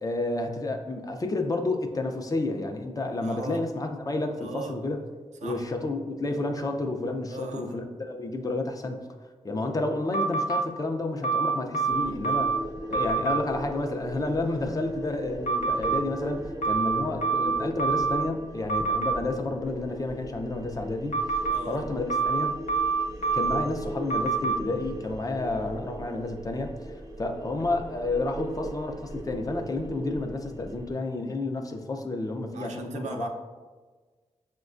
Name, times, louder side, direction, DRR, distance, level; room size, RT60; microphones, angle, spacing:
voice 1, 0.0-5.0 5.4-9.0 9.4-12.5 12.9-21.2 21.7-22.5 23.3-33.3, left 2 dB, 30° left, 4 dB, 0.5 m, -30 dB
voice 2, 3.2-3.6 4.4-4.7 5.4-5.6 7.3-7.8 11.9-12.4 21.5-21.8 32.5-33.3, right 3 dB, 90° right, 2 dB, 0.5 m, -38 dB
sound 1, 10.1-10.6 11.2-12.6 12.9-13.4 15.5-16.0 16.6-18.2 18.7-19.1 21.1-21.6 22.1-23.6 24.1-24.6, right 5 dB, 90° left, 0.5 m, -26 dB
sound 2, 11.9-30.9, right 1 dB, 30° right, 0.6 m, -38 dB
6.0 x 2.2 x 2.5 m, 1.3 s
cardioid pair, 70°, 12 cm